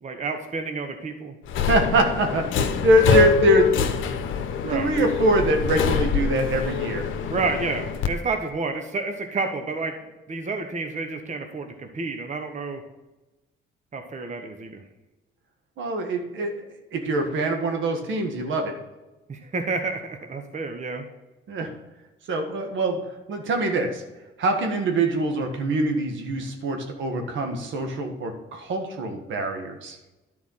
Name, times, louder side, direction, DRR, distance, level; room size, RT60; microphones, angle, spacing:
voice 1, 0.0-1.3 4.6-4.9 7.3-9.9 10.3-12.8 13.9-14.8 19.3-21.1, right 3 dB, 35° right, 5 dB, 1.2 m, -30 dB
Subway metro underground, 1.5-8.1, left 7 dB, 80° left, 0.9 m, -25 dB
voice 2, 1.7-3.7 4.7-7.1 15.8-16.6 16.9-18.7 21.5-21.7 22.3-23.0 23.3-24.0 24.4-30.0, right 1 dB, 75° right, 4 dB, 1.6 m, -23 dB
10.5 x 4.7 x 5.7 m, 1.1 s
cardioid pair, 90°, 20 cm